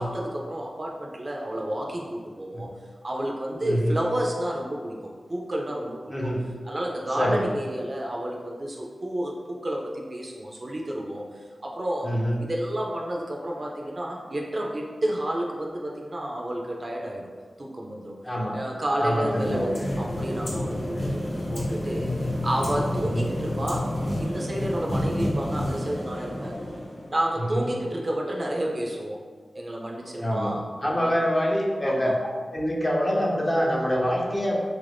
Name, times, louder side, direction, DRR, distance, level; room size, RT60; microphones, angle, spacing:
voice 1, 0.0-2.7 3.0-6.3 6.6-12.1 12.4-17.3 17.6-18.1 18.5-23.9 24.2-26.6 27.1-29.2 29.5-31.1 31.8-32.2, right 1 dB, 35° right, -1 dB, 0.4 m, -31 dB
voice 2, 3.6-4.0 6.1-6.5 7.2-7.5 12.0-12.4 18.2-18.6 19.0-19.7 23.0-23.3 27.4-27.7 30.2-32.1 32.5-34.6, equal, 20° left, -2 dB, 0.5 m, -25 dB
sound 1, 19.0-27.3, left 1 dB, 60° left, 0.9 m, -29 dB
2.9 x 2.5 x 3.4 m, 1.5 s
wide cardioid pair, 105°, 0 cm